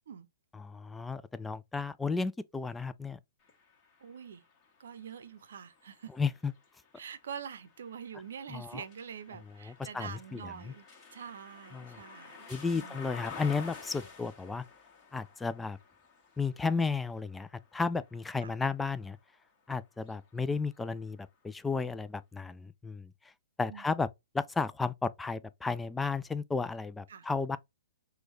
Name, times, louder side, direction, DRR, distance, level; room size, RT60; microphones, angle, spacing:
voice 1, 0.6-3.2 6.2-6.5 8.5-8.8 9.6-10.4 11.7-12.0 12.5-14.6 15.1-15.8 16.4-19.2 19.7-23.1 23.6-24.1 24.3-27.6, left 4 dB, 10° left, 0.3 m, -33 dB
sound 1, 3.4-19.3 19.9-21.1, left 5 dB, 25° left, 1.5 m, -52 dB
voice 2, 4.0-4.4 4.8-6.1 7.0-13.2 18.4-18.5 23.7-23.8 27.1-27.3, right 7 dB, 60° right, 0.7 m, -45 dB
6.1 x 2.3 x 3.1 m
figure-of-eight pair, 115°, 0 cm